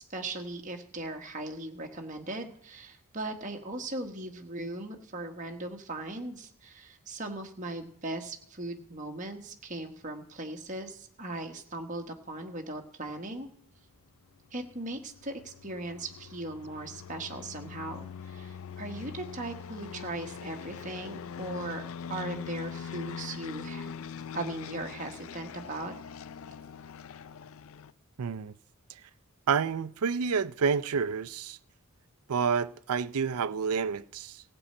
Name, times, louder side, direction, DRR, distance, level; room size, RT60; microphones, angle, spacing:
voice 1, 0.0-13.5 14.5-21.8 22.1-23.9 24.3-25.9, right 2 dB, 35° right, 1.4 m, -38 dB
sound 1, 14.6-27.9, left 7 dB, 70° left, 0.4 m, -42 dB
voice 2, 28.2-28.5 29.5-31.6 32.3-34.4, right 6 dB, 85° right, 0.5 m, -29 dB
15.5 x 5.5 x 8.6 m
head